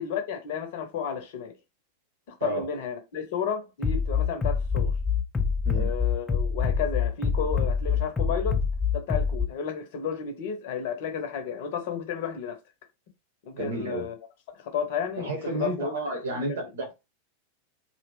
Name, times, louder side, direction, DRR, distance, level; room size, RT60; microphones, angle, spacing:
voice 1, 0.0-1.6 2.3-4.9 5.7-8.6 8.9-12.6 13.4-14.2 14.5-16.7, left 7 dB, 50° left, 0.7 m, -32 dB
Bass drum, 3.8-9.4, left 6 dB, 15° left, 0.4 m, -25 dB
voice 2, 13.5-14.1 15.2-16.9, right 2 dB, 65° right, 0.8 m, -31 dB
2.7 x 2.1 x 3.0 m
figure-of-eight pair, 90°, 0 cm